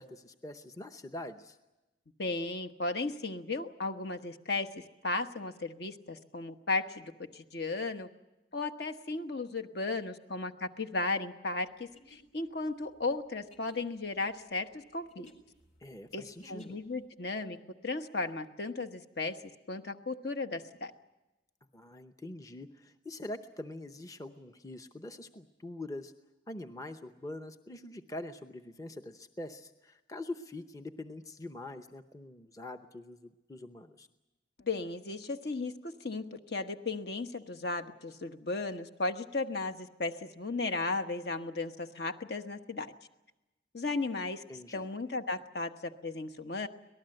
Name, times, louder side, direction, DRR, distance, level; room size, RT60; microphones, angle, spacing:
voice 1, 0.0-1.6 15.8-16.8 21.7-26.1 26.5-34.1 44.5-44.8, left 1 dB, 20° left, 7 dB, 0.7 m, -44 dB
voice 2, 2.2-8.1 8.5-15.3 16.1-17.6 17.8-19.4 19.7-20.9 34.6-42.9 43.7-44.4 44.7-46.7, left 3 dB, 60° left, 7 dB, 1.2 m, -35 dB
sound 1, 11.8-17.0, left 1 dB, 40° left, 3.5 m, -60 dB
25.5 x 18.5 x 7.8 m, 1.0 s
head